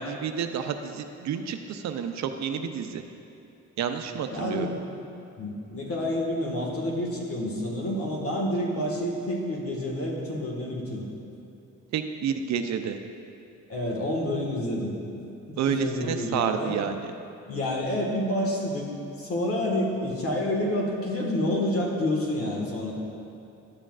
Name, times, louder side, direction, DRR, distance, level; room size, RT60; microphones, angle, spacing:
voice 1, 0.0-3.0 3.8-4.7 11.9-13.0 15.6-17.1, right 7 dB, 65° right, 7 dB, 0.6 m, -29 dB
voice 2, 4.3-4.7 5.4-11.1 13.7-14.9 15.7-16.8 17.5-18.9 19.2-22.9, left 1 dB, 50° left, -1 dB, 1.7 m, -28 dB
11.5 x 7.4 x 2.5 m, 2.8 s
cardioid pair, 90°, 30 cm